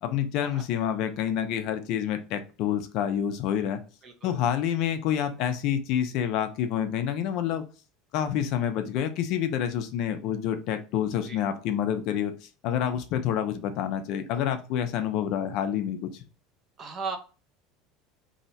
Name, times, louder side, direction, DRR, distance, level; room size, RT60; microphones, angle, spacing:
voice 1, 0.0-3.8 4.2-7.6 8.1-16.2, left 9 dB, 45° left, 8 dB, 0.4 m, -28 dB
voice 2, 4.0-4.5 11.2-11.4 16.8-17.2, right 5 dB, 25° right, 6 dB, 0.4 m, -37 dB
2.7 x 2.1 x 4.0 m, 0.34 s
cardioid pair, 175°, 0 cm